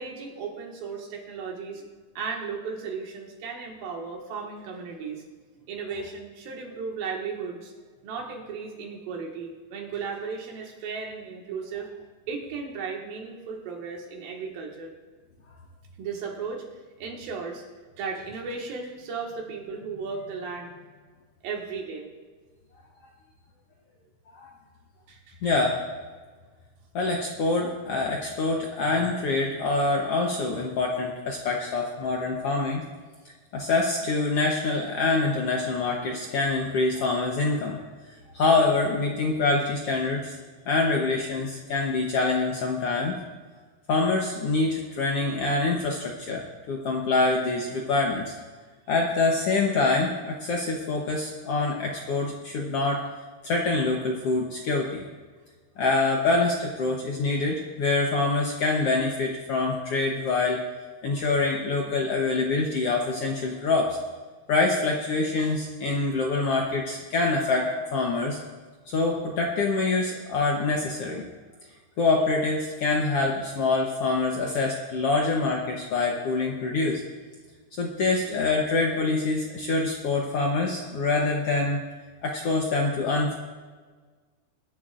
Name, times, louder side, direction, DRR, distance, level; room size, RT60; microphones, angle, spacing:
voice 1, 0.0-1.9 2.2-5.2 5.7-7.7 8.0-11.9 12.3-14.9 16.0-16.6 17.0-17.6 18.0-21.0 21.4-22.1 25.1-25.4 75.1-75.3, right 5 dB, 90° right, 0 dB, 3.5 m, -35 dB
voice 2, 25.4-25.8 26.9-32.8 33.5-37.8 38.3-40.3 40.6-43.1 43.9-46.4 46.7-48.3 48.9-53.0 53.4-55.0 55.8-60.6 61.0-64.0 64.5-68.4 68.9-71.2 72.0-77.0 77.8-81.8 82.2-83.3, left 3 dB, 65° left, 0 dB, 1.5 m, -25 dB
22.0 x 11.0 x 2.5 m, 1.4 s
omnidirectional pair, 4.0 m